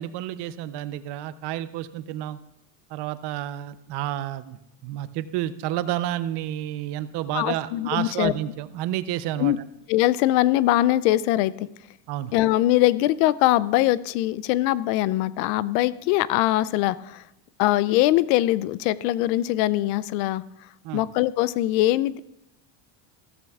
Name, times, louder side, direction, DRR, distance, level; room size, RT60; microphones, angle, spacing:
voice 1, 0.0-2.4 2.9-9.5 12.1-12.3 20.8-21.0, right 13 dB, 55° right, 14 dB, 0.7 m, -30 dB
voice 2, 7.3-8.3 9.4-9.6 9.9-11.7 12.3-17.2 17.6-20.4 20.9-22.2, left 15 dB, 90° left, 19 dB, 0.6 m, -22 dB
14.5 x 13.5 x 2.4 m, 0.83 s
cardioid pair, 125°, 48 cm